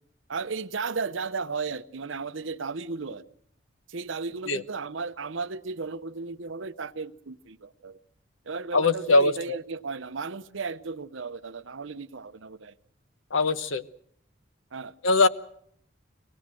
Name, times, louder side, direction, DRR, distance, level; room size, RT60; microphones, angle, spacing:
voice 1, 0.3-3.2 3.9-8.0 8.5-12.7 14.7-14.9, right 4 dB, 75° right, 0.8 m, -35 dB
voice 2, 8.7-9.6 13.3-13.8 15.0-15.3, left 3 dB, 80° left, 1.0 m, -21 dB
24.0 x 18.0 x 7.6 m
head